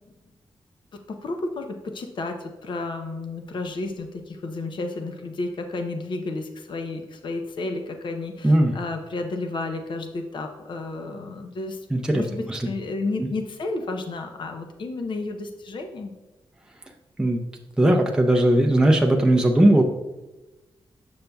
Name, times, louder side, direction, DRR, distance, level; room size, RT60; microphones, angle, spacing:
voice 1, 1.1-11.9 12.1-16.1, left 2 dB, 55° left, 5 dB, 0.6 m, -32 dB
voice 2, 11.9-12.2 12.5-12.6 13.2-13.3 17.2-17.4 17.8-19.8, right 1 dB, 10° right, 2 dB, 0.5 m, -18 dB
6.9 x 6.6 x 2.3 m, 1.1 s
wide cardioid pair, 115°, 10 cm